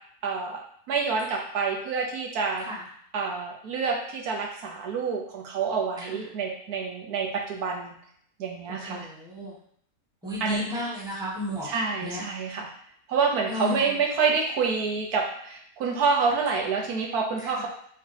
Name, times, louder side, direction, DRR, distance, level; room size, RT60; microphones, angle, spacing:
voice 1, 0.2-0.6 0.9-2.7 3.1-7.9 8.4-9.1 10.4-10.8 11.6-12.7 13.1-17.7, right 5 dB, 85° right, 0 dB, 1.3 m, -27 dB
voice 2, 8.9-9.5 10.2-11.7 12.0-12.2 13.5-13.9 17.5-17.7, left 2 dB, 5° right, -5 dB, 0.9 m, -33 dB
3.7 x 3.3 x 3.9 m, 0.64 s
omnidirectional pair, 1.6 m